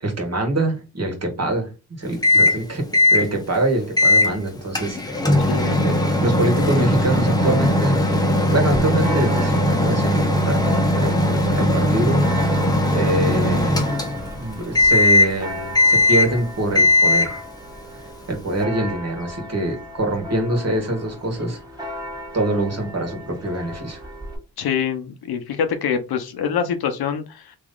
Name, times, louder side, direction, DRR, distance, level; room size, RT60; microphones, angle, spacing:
voice 1, 0.0-1.7 2.0-5.5 5.8-5.9 6.2-8.0 8.4-14.0 14.4-17.4 18.3-21.6 22.3-24.1, right 2 dB, 40° right, 2 dB, 1.6 m, -24 dB
Microwave oven, 2.2-2.6 2.9-3.3 4.0-4.3 4.7-14.4 14.7-15.4 15.7-16.4 16.7-17.4, left 1 dB, 10° left, 0.8 m, -18 dB
voice 2, 5.5-5.9 24.6-27.6, left 7 dB, 70° left, 8 dB, 0.8 m, -25 dB
Church bell, 7.4-24.4, left 1 dB, 10° right, 1.5 m, -35 dB
3.1 x 2.7 x 3.7 m, 0.29 s
cardioid pair, 65°, 39 cm